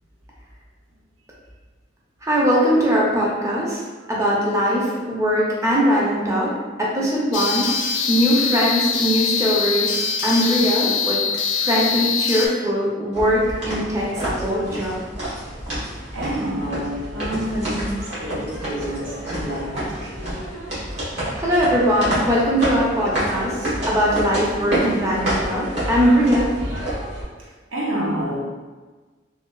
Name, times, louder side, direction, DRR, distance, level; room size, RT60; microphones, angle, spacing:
voice 1, 2.2-3.8 4.1-6.5 6.8-7.7 8.1-9.9 10.2-11.2 11.6-15.0 21.4-26.5, equal, 15° right, -5 dB, 0.4 m, -20 dB
sound 1, 7.3-12.5, left 6 dB, 70° left, 0.4 m, -23 dB
sound 2, 13.1-27.2, right 1 dB, 60° right, 1.3 m, -28 dB
voice 2, 16.1-20.1 23.1-23.3 24.4-24.5 27.4-28.4, equal, 85° right, -4 dB, 0.7 m, -29 dB
3.1 x 2.5 x 2.2 m, 1.3 s
head